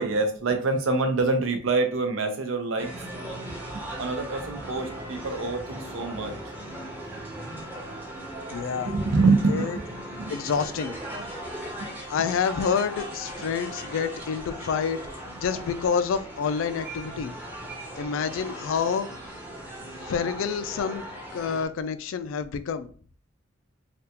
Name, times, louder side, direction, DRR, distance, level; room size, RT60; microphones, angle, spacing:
voice 1, 0.0-2.9 3.7-6.4 8.8-10.4 11.8-11.9, right 3 dB, 85° right, 6 dB, 0.6 m, -26 dB
sound 1, 2.8-21.6, right 1 dB, 10° right, 0.7 m, -38 dB
voice 2, 8.5-8.9 9.5-9.8 10.3-11.0 12.1-15.0 15.4-17.3 18.0-19.1 20.1-22.9, left 6 dB, 85° left, 11 dB, 0.3 m, -28 dB
3.4 x 2.3 x 2.8 m, 0.43 s
head